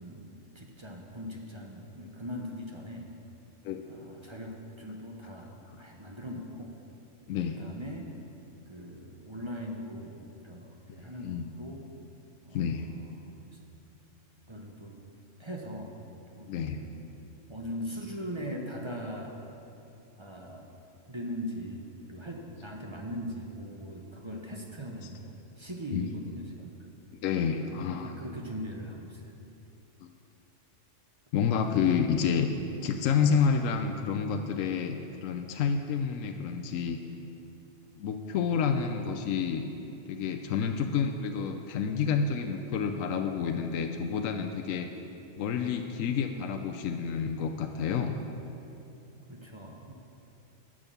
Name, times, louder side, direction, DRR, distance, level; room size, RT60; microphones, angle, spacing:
voice 1, 0.0-3.1 3.9-6.7 7.6-8.1 8.7-11.9 12.4-12.8 13.2-13.6 14.5-15.0 15.4-15.9 16.3-17.0 17.5-19.4 20.2-20.7 21.1-25.2 25.6-26.8 27.7-29.3 49.3-49.9, equal, 25° right, 1 dB, 0.8 m, -40 dB
voice 2, 7.3-7.6 10.9-11.5 12.5-12.9 16.5-16.8 25.9-26.0 27.1-28.1 30.0-30.1 31.3-32.5 32.8-37.0 38.0-39.7 40.1-44.9 45.4-48.2, left 6 dB, 85° left, 6 dB, 1.0 m, -29 dB
10.5 x 6.6 x 6.9 m, 2.8 s
omnidirectional pair, 1.3 m